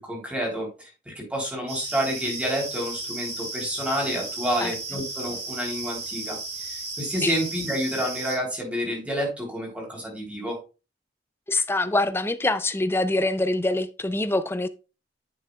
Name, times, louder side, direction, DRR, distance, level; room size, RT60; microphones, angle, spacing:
voice 1, 0.1-10.6, equal, 10° right, 3.4 m, -29 dB
sound 1, 1.7-8.4, right 3 dB, 60° right, 3.3 m, -34 dB
voice 2, 11.5-14.7, left 2 dB, 15° left, 0.4 m, -24 dB
9.9 x 6.5 x 2.3 m
head